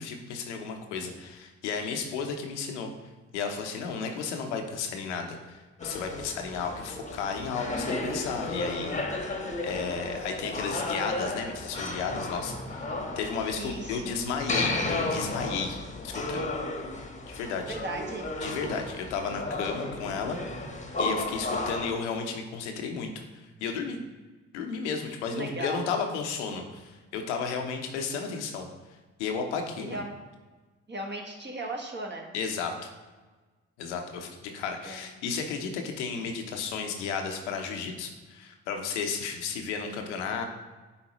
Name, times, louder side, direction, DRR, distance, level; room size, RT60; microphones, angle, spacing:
voice 1, 0.0-2.9 3.3-16.5 17.3-17.8 18.4-20.6 21.0-24.0 24.5-28.7 29.2-30.0 32.3-32.9 33.8-40.5, left 5 dB, 90° left, 4 dB, 0.8 m, -33 dB
sound 1, 5.8-21.9, left 2 dB, 20° left, 1.1 m, -33 dB
voice 2, 13.6-14.1 17.7-18.3 25.3-25.8 29.8-30.1 30.9-32.3 34.8-35.0, right 1 dB, 30° right, 1 dB, 1.5 m, -36 dB
9.6 x 3.8 x 3.0 m, 1.3 s
hypercardioid pair, 50°, 34 cm